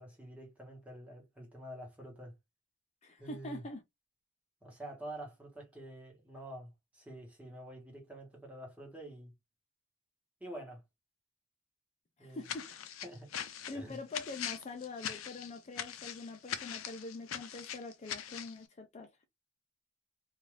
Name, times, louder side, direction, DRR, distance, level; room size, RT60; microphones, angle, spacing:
voice 1, 0.0-2.3 3.2-3.6 4.6-9.3 10.4-10.8 12.2-12.5 13.0-13.3 13.7-14.0, right 1 dB, 5° right, 1.1 m, -47 dB
voice 2, 3.0-3.8 12.2-12.6 13.7-19.1, left 3 dB, 35° left, 0.5 m, -44 dB
sound 1, 12.4-18.6, left 9 dB, 85° left, 0.5 m, -41 dB
2.5 x 2.3 x 3.2 m
head